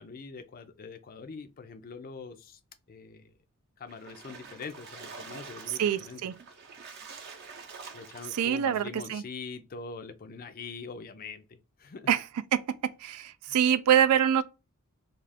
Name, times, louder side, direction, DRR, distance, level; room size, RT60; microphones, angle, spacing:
voice 1, 0.0-2.6 2.9-3.3 3.8-6.2 7.9-12.1 13.5-13.6, left 4 dB, 40° left, 0.4 m, -43 dB
Splash splatter, 3.9-8.7, right 5 dB, 45° right, 0.6 m, -46 dB
voice 2, 5.8-6.3 8.3-9.2 12.1-12.2 12.5-12.6 13.0-14.4, right 9 dB, 80° right, 0.3 m, -25 dB
2.4 x 2.4 x 3.3 m
head